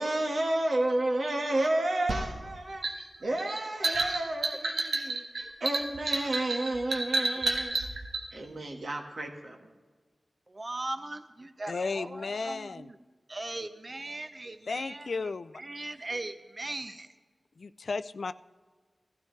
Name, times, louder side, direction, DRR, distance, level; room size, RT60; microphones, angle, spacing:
voice 1, 0.0-7.8 8.3-9.7, right 1 dB, 75° right, 2 dB, 1.6 m, -31 dB
sound 1, 2.1-8.2, right 2 dB, 90° right, 1.2 m, -30 dB
voice 2, 10.5-13.0 13.3-17.1, right 2 dB, 45° right, 10 dB, 0.7 m, -39 dB
voice 3, 11.7-12.9 14.7-15.6 17.6-18.3, left 4 dB, 80° left, 13 dB, 0.3 m, -34 dB
16.5 x 12.5 x 3.3 m, 1.4 s
cardioid pair, 45°, 0 cm